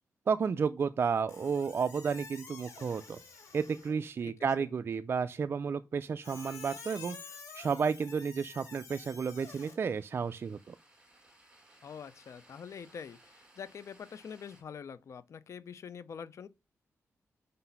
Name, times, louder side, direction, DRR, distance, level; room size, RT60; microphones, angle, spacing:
voice 1, 0.3-3.2 3.5-10.8, right 6 dB, 45° right, 0.3 m, -32 dB
Squeak, 1.3-4.0 6.2-9.7, left 5 dB, 90° left, 2.0 m, -49 dB
voice 2, 4.2-4.7 11.8-16.5, left 7 dB, 60° left, 0.5 m, -45 dB
sound 1, 9.4-14.6, right 1 dB, 15° right, 2.1 m, -62 dB
5.2 x 4.0 x 5.6 m
wide cardioid pair, 110°, 6 cm